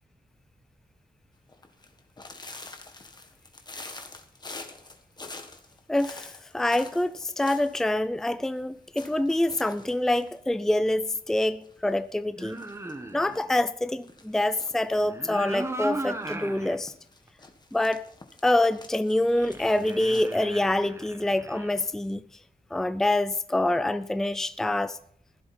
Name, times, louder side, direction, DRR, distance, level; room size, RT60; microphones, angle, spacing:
sound 1, 1.5-7.9 8.2-8.3 8.5-8.6 9.0-11.0 11.4-12.0 12.4-13.4 14.0-14.9 15.4-16.4 16.8-20.3, left 3 dB, 25° left, 1.6 m, -46 dB
voice 1, 5.9-12.6 13.1-16.9 17.7-18.0 18.4-22.2 22.7-25.0, left 1 dB, 5° left, 0.5 m, -26 dB
sound 2, 12.4-13.5 14.9-16.8 17.3-17.4 19.3-21.8, right 2 dB, 15° right, 1.5 m, -37 dB
15.5 x 11.5 x 4.3 m
wide cardioid pair, 140°, 16 cm